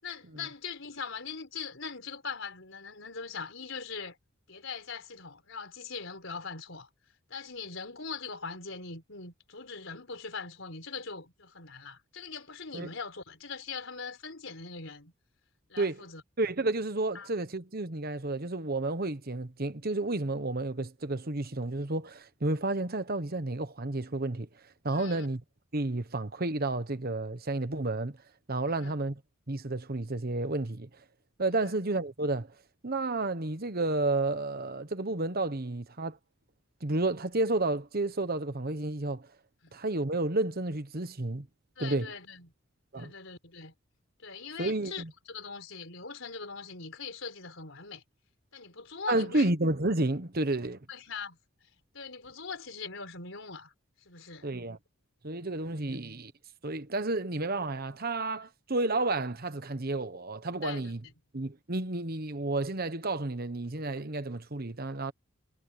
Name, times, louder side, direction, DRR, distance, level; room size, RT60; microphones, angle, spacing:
voice 1, 0.0-4.2 4.5-6.9 7.3-15.1 15.7-16.2 17.1-17.3 24.9-25.3 28.7-28.9 31.6-31.7 39.6-39.7 41.8-42.5 43.0-43.7 44.2-48.0 48.5-49.5 50.9-51.7 51.9-53.7 54.0-54.5 55.9-56.0 60.6-61.1, left 5 dB, 65° left, 4.8 m, -41 dB
voice 2, 16.4-24.5 24.8-25.4 25.7-28.2 28.5-29.1 29.5-30.9 31.4-32.5 32.8-36.2 36.8-39.3 39.7-41.5 41.8-42.1 42.9-43.1 44.6-45.1 49.1-50.8 54.4-54.8 55.2-56.3 56.6-61.0 61.3-65.1, right 2 dB, 45° right, 1.2 m, -31 dB
head